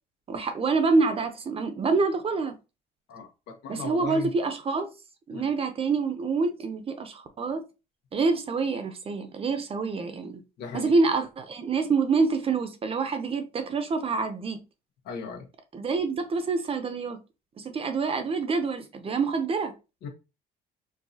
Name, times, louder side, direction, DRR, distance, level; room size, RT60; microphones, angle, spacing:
voice 1, 0.3-2.5 3.7-4.9 5.3-7.6 8.1-10.4 10.7-14.6 15.7-17.2 17.6-19.7, right 4 dB, 35° right, 0.8 m, -26 dB
voice 2, 3.1-4.3 5.3-5.5 10.6-10.9 15.0-15.5 20.0-20.1, left 5 dB, 80° left, 1.2 m, -37 dB
4.7 x 2.6 x 2.8 m
cardioid pair, 110°, 17 cm